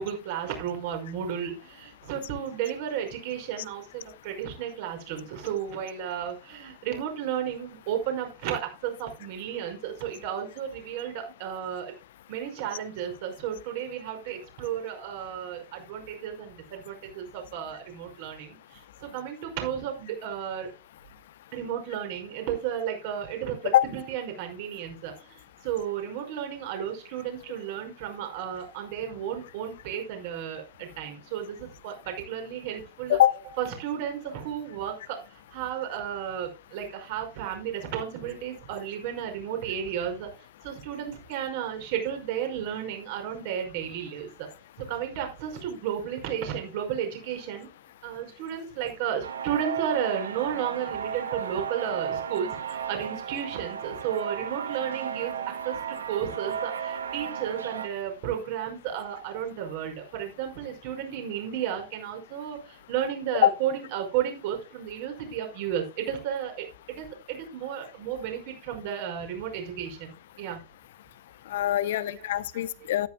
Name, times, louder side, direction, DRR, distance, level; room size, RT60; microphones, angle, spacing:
voice 1, 0.0-11.9 12.3-20.7 21.5-33.2 33.6-35.2 35.5-40.3 40.6-44.5 44.8-47.7 48.0-55.3 55.6-70.6 71.8-72.2, right 9 dB, 50° right, 5.2 m, -33 dB
sound 1, 49.2-57.9, right 7 dB, 70° right, 1.6 m, -34 dB
voice 2, 71.5-73.1, left 13 dB, 55° left, 0.7 m, -22 dB
13.5 x 12.5 x 2.2 m
figure-of-eight pair, 90°, 0 cm